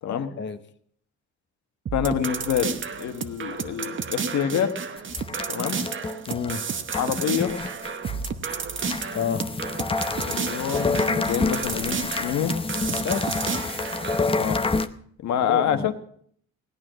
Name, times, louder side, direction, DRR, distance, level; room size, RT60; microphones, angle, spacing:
voice 1, 0.1-0.6 6.3-6.7 9.1-9.5 13.0-13.5 15.5-15.9, left 7 dB, 40° left, 8 dB, 1.0 m, -30 dB
voice 2, 1.9-4.8 5.5-5.8 6.9-7.5 10.2-12.6 14.4-14.6 15.2-15.9, left 9 dB, 65° left, 8 dB, 1.4 m, -26 dB
sound 1, 1.9-14.2, right 6 dB, 40° right, 1.0 m, -32 dB
sound 2, 5.0-14.9, left 3 dB, 20° left, 0.8 m, -28 dB
17.5 x 9.4 x 6.3 m, 0.62 s
cardioid pair, 90°, 30 cm